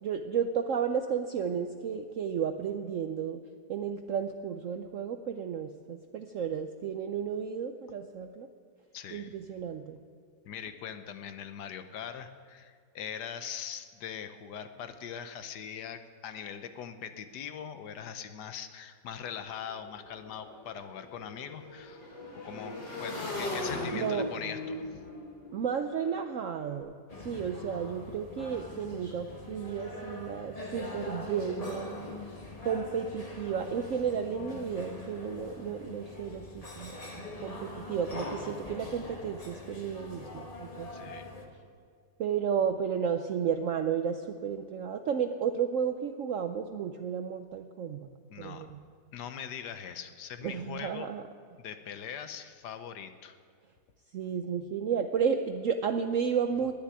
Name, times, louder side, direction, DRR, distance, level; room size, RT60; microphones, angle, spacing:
voice 1, 0.0-3.4 3.7-8.5 9.1-10.0 23.9-24.3 25.5-26.9 27.2-32.1 32.6-37.0 37.4-41.1 42.2-48.1 48.4-48.8 50.4-51.2 54.1-56.7, right 7 dB, 70° right, 7 dB, 0.7 m, -32 dB
voice 2, 8.9-9.4 10.4-22.0 22.3-25.0 40.9-41.3 48.3-48.7 49.1-51.1 51.6-53.4, left 8 dB, 70° left, 9 dB, 1.3 m, -41 dB
Motorcycle / Engine, 19.2-19.3 19.6-26.7, left 2 dB, 85° left, 5.4 m, -39 dB
sound 1, 27.1-41.5, left 2 dB, 20° left, 1.4 m, -43 dB
10.5 x 10.0 x 9.6 m, 2.2 s
omnidirectional pair, 2.0 m